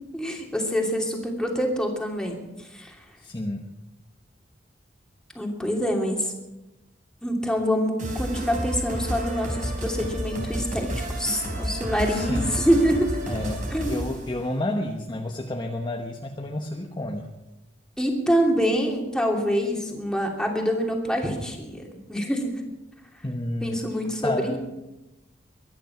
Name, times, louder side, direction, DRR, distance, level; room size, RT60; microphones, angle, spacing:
voice 1, 0.1-2.4 2.7-3.0 5.3-6.3 7.2-13.1 13.7-14.0 18.0-21.8 22.1-22.5 23.6-24.6, equal, 5° left, 0 dB, 2.8 m, -25 dB
voice 2, 3.2-3.7 12.1-12.7 13.3-17.3 23.2-23.8 24.2-24.6, left 1 dB, 25° left, 2 dB, 1.1 m, -30 dB
sound 1, 8.0-14.3, right 1 dB, 45° right, 4.1 m, -31 dB
22.5 x 10.0 x 6.0 m, 0.99 s
head